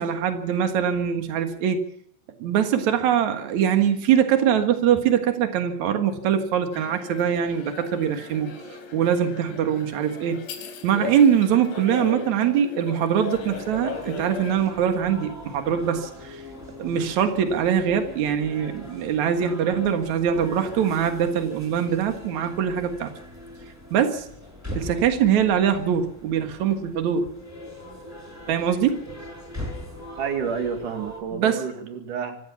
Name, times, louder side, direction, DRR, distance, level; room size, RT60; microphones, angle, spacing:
voice 1, 0.0-1.8 2.4-8.5 8.9-10.5 10.8-16.4 16.8-23.1 23.9-24.3 24.7-27.3 28.5-29.0 31.3-31.6, right 8 dB, 85° right, 6 dB, 1.6 m, -23 dB
sound 1, 6.7-14.6, left 4 dB, 60° left, 5.3 m, -36 dB
sound 2, 13.3-31.2, left 1 dB, 5° right, 5.4 m, -41 dB
voice 2, 30.2-32.4, right 6 dB, 50° right, 5 dB, 2.8 m, -29 dB
25.5 x 14.5 x 7.2 m, 0.71 s
omnidirectional pair, 6.0 m